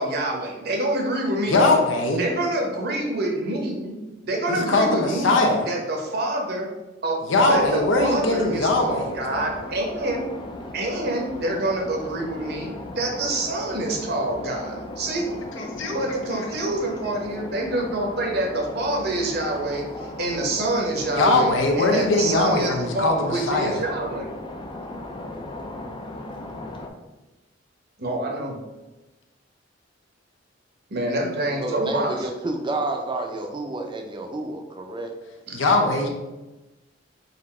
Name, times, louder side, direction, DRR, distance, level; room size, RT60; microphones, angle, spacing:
voice 1, 0.0-1.6 2.1-6.7 7.0-10.3 10.7-15.3 15.9-19.9 20.2-24.3 28.0-28.6 30.9-32.3 35.5-35.6 35.9-36.1, right 1 dB, 55° right, 1 dB, 0.9 m, -27 dB
voice 2, 1.5-2.2 4.5-5.6 7.3-9.5 15.6-16.0 16.3-16.4 21.2-23.8 35.5-36.1, left 2 dB, 80° left, 2 dB, 0.8 m, -21 dB
sound 1, 7.5-26.9, left 2 dB, 25° left, 0.4 m, -37 dB
voice 3, 31.6-35.2, right 2 dB, 25° right, 4 dB, 0.5 m, -30 dB
4.1 x 2.6 x 4.2 m, 1.1 s
head